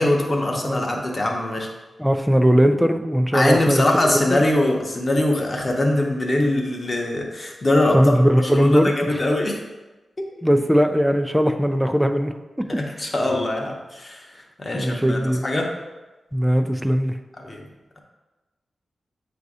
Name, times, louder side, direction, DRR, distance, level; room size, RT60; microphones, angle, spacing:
voice 1, 0.0-1.7 3.3-8.1 8.5-9.6 10.2-10.3 12.8-15.7 17.4-17.6, left 1 dB, 30° left, 0 dB, 0.9 m, -22 dB
voice 2, 2.0-4.4 7.9-9.2 10.4-12.3 12.6-12.7 14.7-15.5 16.3-17.2, equal, ahead, 7 dB, 0.4 m, -19 dB
8.0 x 2.7 x 4.8 m, 1.2 s
wide cardioid pair, 135°, 0 cm